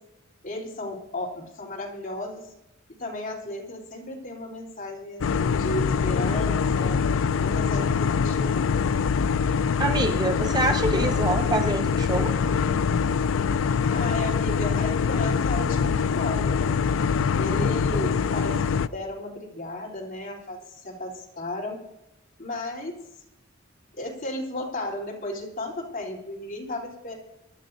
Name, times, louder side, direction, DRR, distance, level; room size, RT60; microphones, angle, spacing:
voice 1, 0.4-2.5 3.0-7.0 7.4-8.9 13.9-16.8 17.4-21.8 22.4-23.0 23.9-27.1, left 1 dB, 45° left, -3 dB, 3.4 m, -34 dB
sound 1, 5.2-18.9, left 6 dB, 70° left, 0.4 m, -24 dB
voice 2, 9.8-12.3, right 2 dB, 20° right, 6 dB, 0.5 m, -26 dB
24.0 x 11.5 x 2.6 m, 0.82 s
head